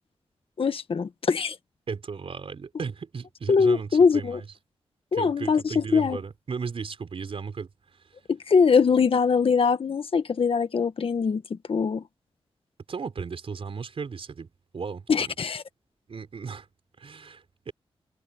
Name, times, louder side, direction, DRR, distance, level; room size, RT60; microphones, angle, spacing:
voice 1, 0.6-1.5 3.5-4.4 5.1-6.2 8.5-12.0 15.1-15.6, left 5 dB, 65° left, 1.5 m, -22 dB
voice 2, 1.9-4.5 5.1-7.7 12.9-14.5 14.7-15.3 16.1-16.6 17.0-17.7, right 5 dB, 65° right, 4.4 m, -35 dB
open air
cardioid pair, 65°, 10 cm